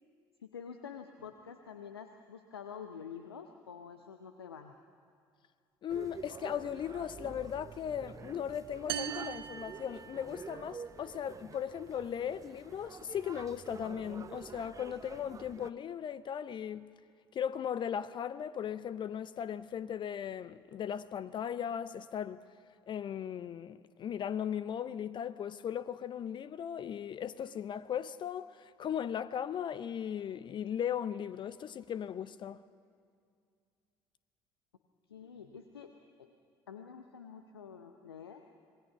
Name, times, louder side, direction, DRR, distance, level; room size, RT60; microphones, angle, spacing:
voice 1, 0.4-4.8 35.1-36.3 36.7-38.4, left 7 dB, 80° left, 0.8 m, -48 dB
voice 2, 5.8-16.9 17.3-22.4 22.9-32.6, left 9 dB, 40° left, 0.6 m, -37 dB
sound 1, 5.9-15.7, right 5 dB, 25° right, 0.7 m, -49 dB
sound 2, 8.9-10.6, right 10 dB, 75° right, 0.7 m, -40 dB
26.0 x 20.5 x 5.9 m
figure-of-eight pair, 55°, 13 cm